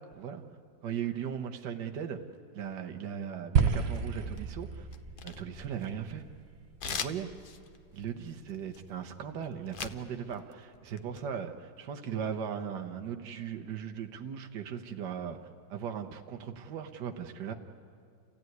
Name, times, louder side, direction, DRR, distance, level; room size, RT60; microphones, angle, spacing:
voice 1, 0.8-2.2 2.5-4.9 5.2-6.2 6.8-7.3 7.9-15.4 15.7-17.5, right 8 dB, 70° right, 5 dB, 1.6 m, -38 dB
sound 1, 3.6-7.9, right 6 dB, 45° right, 1.0 m, -32 dB
sound 2, 3.9-4.5 4.9-6.2 6.8-10.0 10.3-11.2, left 6 dB, 70° left, 0.5 m, -40 dB
29.0 x 15.5 x 9.4 m, 2.4 s
omnidirectional pair, 2.0 m